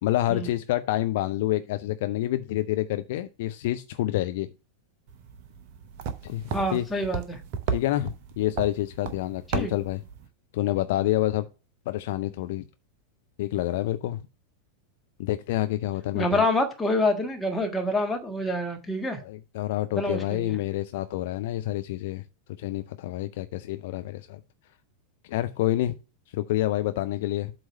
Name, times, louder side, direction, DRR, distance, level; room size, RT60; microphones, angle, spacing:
voice 1, 0.0-4.5 6.2-6.4 6.7-6.8 7.7-10.0 10.5-11.5 11.9-12.7 13.4-14.2 15.2-16.5 19.2-22.2 22.6-24.4 25.3-25.9 26.3-27.5, left 14 dB, 50° left, 0.4 m, -28 dB
sound 1, 5.1-10.3, right 6 dB, 45° right, 0.9 m, -35 dB
voice 2, 6.5-7.4 9.5-9.7 16.1-19.2 19.9-20.6, left 1 dB, 10° left, 1.5 m, -27 dB
8.0 x 3.1 x 6.4 m
figure-of-eight pair, 90°, 0 cm